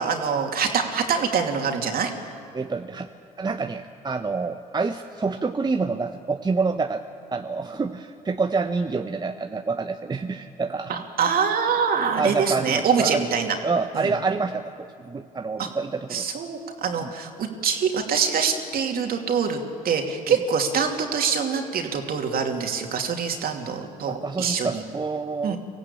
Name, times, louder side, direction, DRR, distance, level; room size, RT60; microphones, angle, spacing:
voice 1, 0.0-2.1 10.9-13.6 13.9-14.1 15.6-15.7 16.1-19.6 19.8-24.8 25.4-25.6, right 6 dB, 50° right, 3 dB, 2.9 m, -25 dB
voice 2, 2.5-3.1 3.4-7.0 7.3-10.9 12.2-13.2 13.6-16.3 17.0-17.1 24.1-25.6, right 4 dB, 20° right, 6 dB, 0.9 m, -27 dB
25.0 x 15.5 x 8.6 m, 2.5 s
hypercardioid pair, 60°, 19 cm